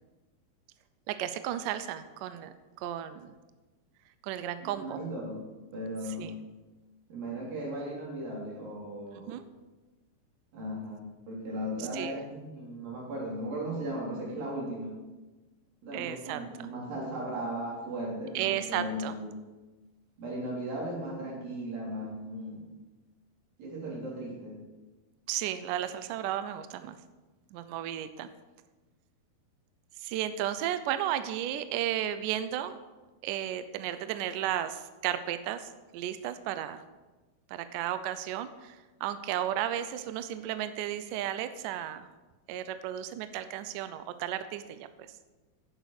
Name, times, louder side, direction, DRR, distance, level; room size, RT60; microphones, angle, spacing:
voice 1, 1.1-3.3 4.2-5.0 6.2-6.3 9.3-9.4 11.8-12.2 15.9-16.4 18.3-19.1 25.3-27.0 27.5-28.3 30.0-32.8 33.2-36.8 37.5-42.1 42.5-44.9, right 11 dB, 85° right, 11 dB, 1.9 m, -34 dB
voice 2, 4.6-6.4 7.1-9.4 10.5-15.0 15.8-19.3 20.2-22.7 23.6-24.7, right 1 dB, 65° right, -3 dB, 5.0 m, -37 dB
10.5 x 9.2 x 6.5 m, 1.2 s
omnidirectional pair, 4.5 m